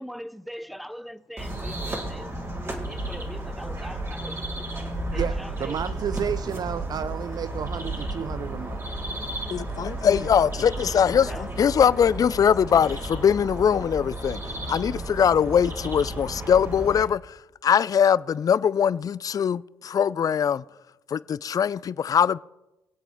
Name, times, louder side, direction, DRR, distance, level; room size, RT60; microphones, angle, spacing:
voice 1, 0.0-2.3 2.5-5.8 11.3-11.7, equal, ahead, 0.7 m, -41 dB
sound 1, 1.4-17.0, right 1 dB, 30° right, 3.7 m, -33 dB
voice 2, 5.1-8.8, right 8 dB, 50° right, 0.4 m, -31 dB
voice 3, 9.5-14.4 14.7-17.2 17.6-20.6 21.1-22.4, left 8 dB, 45° left, 0.4 m, -22 dB
23.5 x 8.3 x 3.6 m
hypercardioid pair, 45°, 9 cm